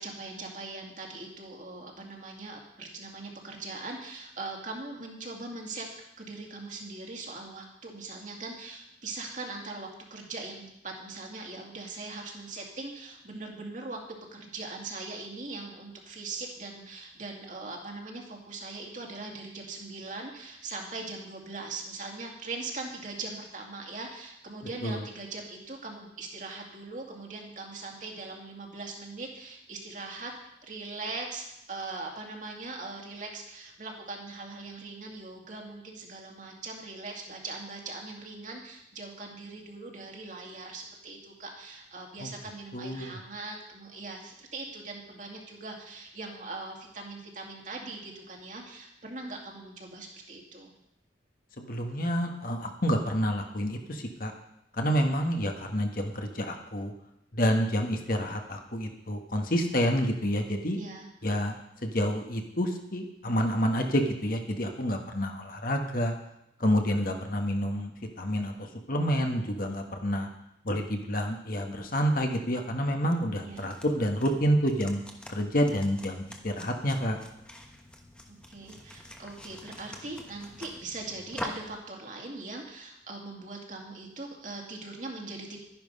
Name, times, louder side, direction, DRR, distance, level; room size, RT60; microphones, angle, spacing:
voice 1, 0.0-5.9 6.2-30.3 30.7-50.7 60.8-61.1 73.4-73.7 78.3-85.6, right 3 dB, 40° right, 1 dB, 2.3 m, -41 dB
voice 2, 42.7-43.2 51.6-54.3 54.7-56.9 57.3-60.8 61.2-61.5 61.8-66.1 66.6-67.9 68.2-68.5 68.9-70.3 70.6-75.0 75.3-77.2, equal, 50° left, 3 dB, 1.5 m, -28 dB
sound 1, 73.4-81.8, left 1 dB, 5° left, 1.2 m, -45 dB
12.0 x 10.5 x 5.4 m, 0.81 s
head